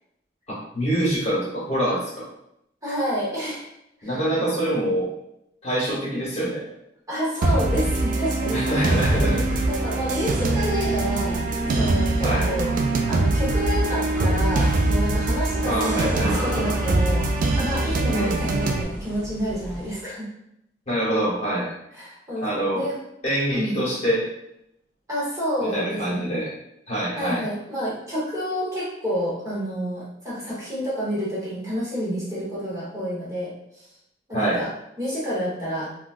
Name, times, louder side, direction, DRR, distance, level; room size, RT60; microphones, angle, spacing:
voice 1, 0.5-2.3 4.0-5.1 5.6-6.7 8.5-9.6 12.2-12.5 15.6-16.3 18.1-18.4 20.9-21.7 22.4-22.9 23.2-24.3 25.7-26.5 26.9-27.4 34.3-34.6, right 1 dB, 35° left, -7 dB, 1.3 m, -25 dB
voice 2, 2.8-3.7 4.0-4.1 4.6-4.7 7.1-9.4 9.7-11.4 11.7-20.2 21.9-22.9 23.5-23.8 25.1-26.3 27.2-33.5 34.3-34.7 35.0-35.9, equal, 20° right, -8 dB, 1.0 m, -29 dB
sound 1, 7.4-18.8, right 2 dB, 50° right, 0.3 m, -23 dB
sound 2, 8.3-20.0, equal, 10° left, 0.5 m, -36 dB
3.7 x 2.3 x 2.3 m, 0.79 s
head